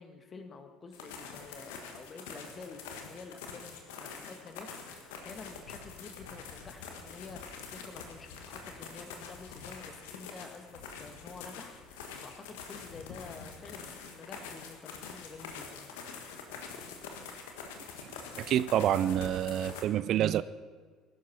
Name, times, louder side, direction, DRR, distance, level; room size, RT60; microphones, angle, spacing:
voice 1, 0.0-16.0, left 4 dB, 35° left, 7 dB, 1.7 m, -49 dB
sound 1, 0.9-19.8, left 5 dB, 65° left, 1.6 m, -45 dB
voice 2, 18.4-20.4, right 11 dB, 50° right, 17 dB, 0.4 m, -27 dB
20.5 x 12.0 x 4.3 m, 1.5 s
figure-of-eight pair, 60°, 0 cm